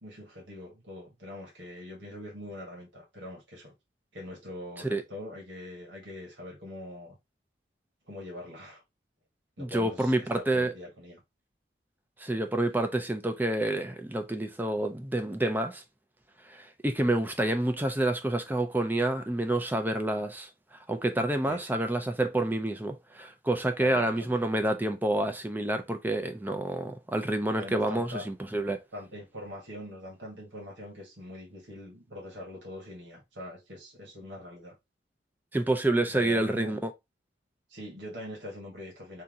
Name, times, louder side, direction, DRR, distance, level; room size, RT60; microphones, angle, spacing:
voice 1, 0.0-3.7 4.1-7.2 8.1-8.8 9.6-11.2 21.4-21.8 23.8-24.4 27.6-28.3 28.9-34.7 36.1-36.8 37.7-39.2, left 1 dB, 90° right, 1.7 m, -43 dB
voice 2, 9.6-10.7 12.2-15.8 16.5-20.5 20.9-28.8 35.5-36.9, right 1 dB, 10° right, 0.5 m, -28 dB
3.6 x 2.8 x 3.7 m
head